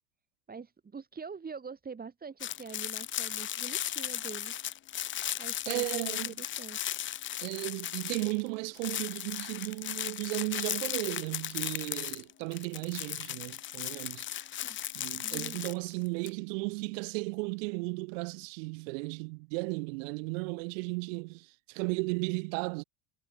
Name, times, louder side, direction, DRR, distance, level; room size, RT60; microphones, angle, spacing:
voice 1, 0.5-4.6 5.4-7.0 14.6-14.8 15.2-15.6, right 5 dB, 20° right, 4.0 m, -44 dB
sound 1, 2.4-8.5 8.7-16.3, left 12 dB, 30° left, 0.6 m, -36 dB
voice 2, 5.7-6.4 7.4-14.3 14.9-22.8, right 31 dB, 70° right, 1.0 m, -35 dB
hypercardioid pair, 95°, 41 cm